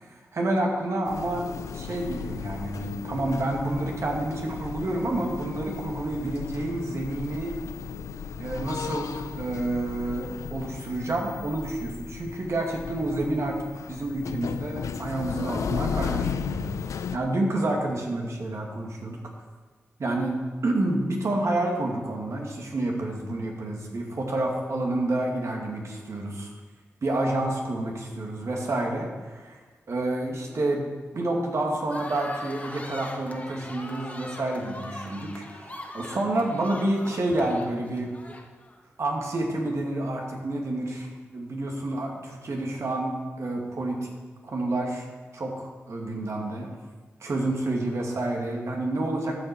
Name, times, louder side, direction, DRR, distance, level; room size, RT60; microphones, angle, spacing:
voice 1, 0.0-7.6 8.4-13.6 13.9-16.7 17.1-19.2 20.0-20.4 20.6-26.5 27.0-29.6 29.9-38.1 39.0-44.0 44.4-45.1 45.3-46.7 47.2-49.4, right 2 dB, 65° right, 0 dB, 2.4 m, -29 dB
sound 1, 1.1-17.2, left 6 dB, 80° left, 0.6 m, -35 dB
sound 2, 31.9-38.8, left 1 dB, 30° left, 2.0 m, -41 dB
12.5 x 7.1 x 6.2 m, 1.4 s
supercardioid pair, 40°, 5 cm